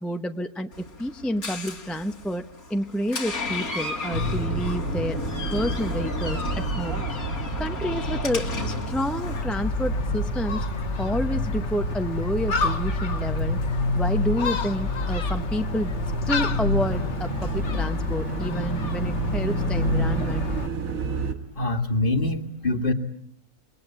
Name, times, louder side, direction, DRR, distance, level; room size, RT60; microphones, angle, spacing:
voice 1, 0.0-5.2 5.5-7.0 7.6-10.6 11.0-13.6 13.9-15.9 16.3-20.5, equal, ahead, 7 dB, 0.7 m, -29 dB
Door, 0.7-9.4, left 3 dB, 85° left, 2.8 m, -33 dB
sound 1, 4.1-21.3, right 1 dB, 70° right, 2.1 m, -29 dB
Gull seagull, 9.2-20.7, left 4 dB, 55° left, 1.5 m, -30 dB
voice 2, 21.6-22.9, left 2 dB, 40° left, 6 dB, 1.9 m, -24 dB
28.0 x 21.5 x 8.9 m, 0.70 s
omnidirectional pair, 1.5 m